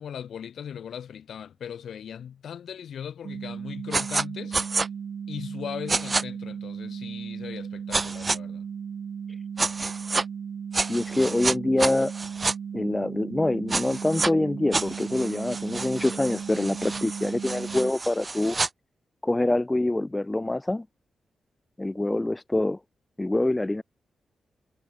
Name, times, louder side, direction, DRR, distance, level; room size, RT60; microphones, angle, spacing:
voice 1, 0.0-4.6 5.3-8.6, left 8 dB, 70° left, 5.2 m, -38 dB
sound 1, 3.2-17.9, right 7 dB, 55° right, 2.0 m, -36 dB
sound 2, 3.9-4.2 4.5-4.9 5.9-6.2 7.9-8.4 9.6-10.2 10.7-12.5 13.7-14.3 14.7-18.7, right 3 dB, 25° right, 5.3 m, -29 dB
voice 2, 10.7-12.1 12.7-18.6 19.2-20.8 21.8-22.8 23.2-23.8, left 2 dB, 10° left, 1.2 m, -25 dB
wide cardioid pair, 165°, 0 cm